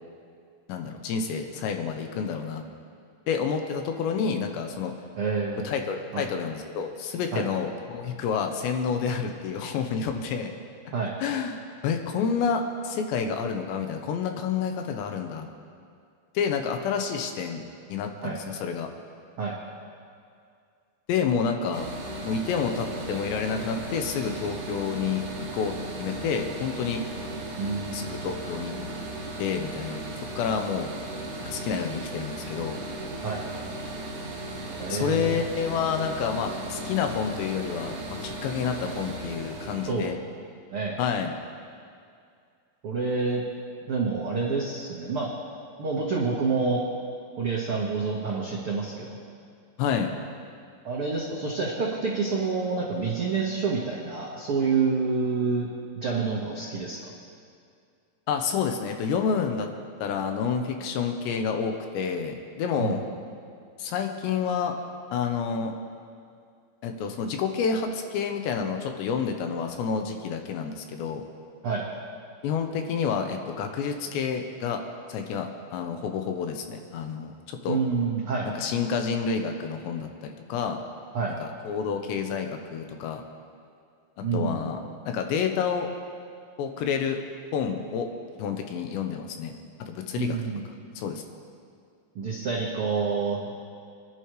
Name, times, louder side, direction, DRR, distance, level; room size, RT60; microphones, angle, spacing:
voice 1, 0.7-2.6 3.3-4.9 5.6-10.5 11.2-15.5 16.3-17.6 17.9-18.9 21.1-21.9 22.3-25.2 25.5-27.0 27.9-28.8 29.4-30.0 30.4-30.9 31.4-32.8 34.9-40.2 41.0-41.4 49.8-50.1 58.3-59.7 60.0-63.0 63.8-64.7 65.1-65.7 66.8-71.2 72.4-74.8 75.1-77.8 78.5-80.8 81.4-83.2 84.2-84.8 85.1-85.9 86.6-87.2 87.5-88.1 88.4-89.5 89.9-90.4 91.0-91.2, left 6 dB, 80° left, 4 dB, 3.1 m, -29 dB
voice 2, 5.2-5.6 6.1-6.2 7.3-7.4 10.9-11.1 18.2-18.3 19.4-19.5 27.6-28.1 33.2-33.4 34.8-35.4 39.9-40.1 40.7-41.0 42.8-43.4 43.9-45.3 45.8-46.8 47.4-49.2 50.8-55.7 56.0-57.1 62.8-63.0 71.6-71.8 77.7-78.5 81.1-81.3 84.2-84.7 90.1-90.6 92.1-93.5, right 4 dB, 85° right, -5 dB, 1.2 m, -28 dB
sound 1, 21.7-39.9, right 2 dB, 50° right, 2.9 m, -36 dB
27.5 x 10.5 x 3.3 m, 2.3 s
omnidirectional pair, 5.2 m